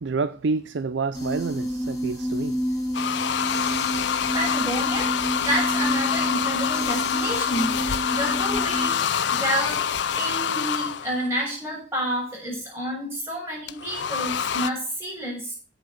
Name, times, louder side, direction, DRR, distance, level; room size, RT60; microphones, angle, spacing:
voice 1, 0.0-2.6, right 4 dB, 70° right, 0.5 m, -28 dB
sound 1, 1.1-8.9, equal, 20° left, 5.5 m, -29 dB
sound 2, 2.9-11.3 13.7-14.7, left 7 dB, 65° left, 0.5 m, -26 dB
voice 2, 4.3-9.0 9.3-9.8 10.2-15.5, right 1 dB, 15° right, 6.8 m, -29 dB
16.0 x 5.5 x 5.7 m
head